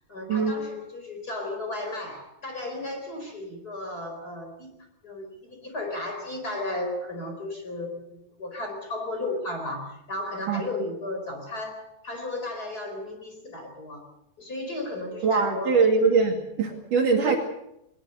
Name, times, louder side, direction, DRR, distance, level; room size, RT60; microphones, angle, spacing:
voice 1, 0.1-4.7 5.0-14.1 14.4-15.8 17.2-17.4, left 2 dB, 20° left, 3 dB, 4.6 m, -34 dB
voice 2, 15.2-17.4, right 4 dB, 55° right, 2 dB, 3.7 m, -22 dB
22.5 x 20.5 x 6.6 m, 0.81 s
omnidirectional pair, 4.9 m